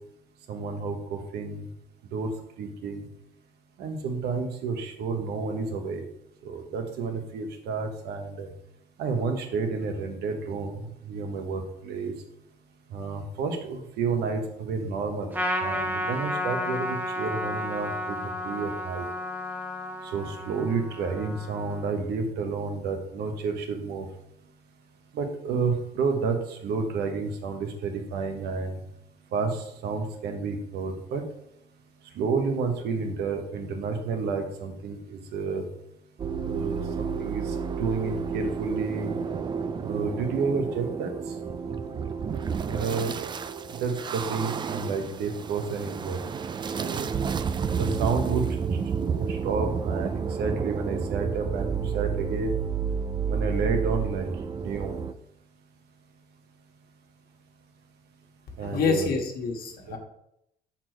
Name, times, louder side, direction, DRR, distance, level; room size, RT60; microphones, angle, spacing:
voice 1, 0.5-1.7 2.1-2.3 2.6-3.0 3.8-6.0 6.4-8.5 9.0-10.8 11.1-12.1 12.9-15.3 15.6-18.2 18.4-19.1 20.1-24.1 25.1-28.8 29.3-31.2 32.1-35.6 36.4-39.2 39.8-41.1 42.7-43.1 43.8-46.2 46.8-47.1 47.8-52.6 53.3-54.3 54.6-55.0 58.6-59.1 59.9-60.0, right 4 dB, 75° right, 5 dB, 1.1 m, -30 dB
Trumpet, 15.3-22.0, left 1 dB, 10° right, 0.9 m, -32 dB
sound 1, 36.2-55.1, right 6 dB, 25° right, 0.3 m, -30 dB
voice 2, 58.6-60.0, left 4 dB, 60° left, 2 dB, 1.4 m, -27 dB
6.1 x 4.3 x 4.6 m, 0.79 s
cardioid pair, 110°, 17 cm